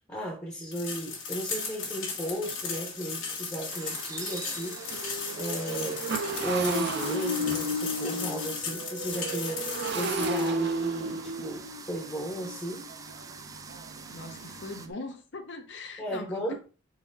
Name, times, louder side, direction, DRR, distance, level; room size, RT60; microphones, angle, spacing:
voice 1, 0.1-5.0 5.4-6.0 6.4-12.9 16.0-16.5, equal, 15° left, 0.8 m, -35 dB
sound 1, 0.7-10.5, left 5 dB, 85° left, 1.4 m, -36 dB
Motorcycle, 2.3-2.4 2.9-3.0 3.3-14.9, right 1 dB, 60° right, 0.6 m, -33 dB
sound 2, 3.7-14.9, right 5 dB, 20° right, 0.3 m, -46 dB
voice 2, 14.1-16.5, left 3 dB, 65° left, 0.7 m, -41 dB
4.1 x 4.0 x 2.6 m
head